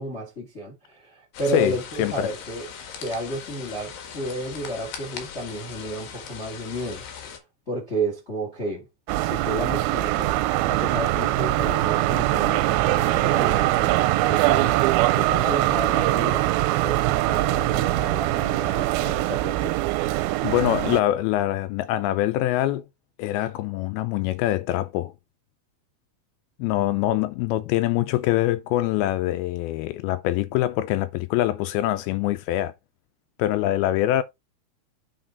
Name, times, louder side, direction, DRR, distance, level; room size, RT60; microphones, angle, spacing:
voice 1, 0.0-2.7 3.0-7.4 7.7-8.9 9.2-14.8 15.1-16.5 16.8-19.9, right 1 dB, 35° left, 1.1 m, -32 dB
sound 1, 1.3-7.4, left 7 dB, 65° left, 3.2 m, -39 dB
voice 2, 1.5-2.3 20.4-22.8 23.2-25.1 26.6-32.7 33.4-34.2, left 14 dB, 80° left, 2.3 m, -24 dB
sound 2, 9.1-21.0, right 16 dB, 80° right, 2.3 m, -22 dB
8.9 x 4.2 x 3.9 m
omnidirectional pair, 4.6 m